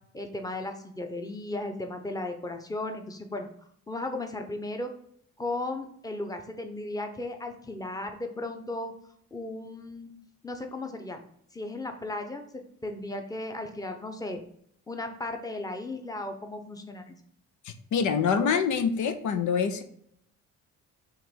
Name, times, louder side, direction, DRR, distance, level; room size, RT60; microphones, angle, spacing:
voice 1, 0.1-3.5 3.9-4.9 5.4-8.9 9.3-10.1 10.4-11.2 11.5-14.4 14.9-17.2, left 2 dB, 10° left, 5 dB, 0.9 m, -35 dB
voice 2, 17.6-19.8, left 6 dB, 75° left, 9 dB, 0.7 m, -26 dB
5.6 x 3.2 x 5.3 m, 0.68 s
cardioid pair, 90°, 30 cm